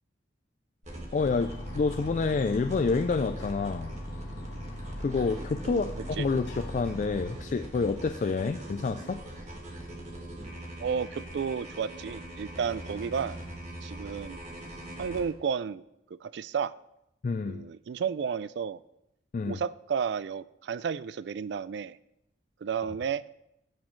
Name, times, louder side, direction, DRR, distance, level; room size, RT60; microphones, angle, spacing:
sound 1, 0.8-15.2, right 1 dB, 40° right, 1.7 m, -42 dB
voice 1, 1.1-4.0 5.0-9.2 17.2-17.6 19.3-19.6, left 4 dB, 40° left, 9 dB, 0.3 m, -28 dB
sound 2, 1.2-7.3, equal, 70° left, 2.2 m, -40 dB
voice 2, 5.6-6.3 10.8-13.4 13.8-14.4 15.0-15.8 16.1-16.7 17.5-18.8 19.5-22.0 22.6-23.2, right 6 dB, 65° right, 18 dB, 0.3 m, -32 dB
16.0 x 6.3 x 3.1 m, 0.84 s
head